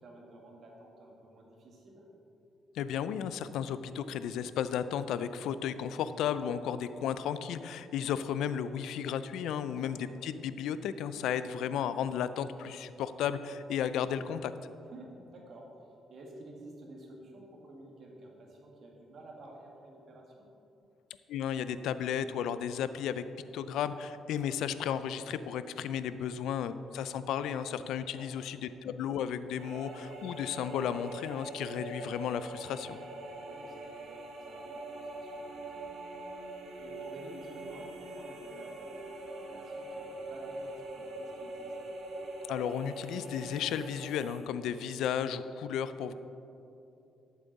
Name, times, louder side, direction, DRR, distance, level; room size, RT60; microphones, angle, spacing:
voice 1, 0.0-2.1 6.5-6.7 9.7-10.0 14.9-15.7 16.1-20.5 28.1-28.3 33.4-34.1 34.5-35.5 35.7-36.0 36.8-41.7 44.4-44.6, right 2 dB, 60° right, -1 dB, 1.8 m, -51 dB
voice 2, 2.7-14.5 21.3-23.2 23.5-33.0 42.5-46.1, left 8 dB, 85° left, 13 dB, 0.4 m, -34 dB
sound 1, 29.6-44.4, right 2 dB, 75° right, 1.4 m, -43 dB
12.0 x 7.3 x 4.0 m, 2.8 s
cardioid pair, 90°, 0 cm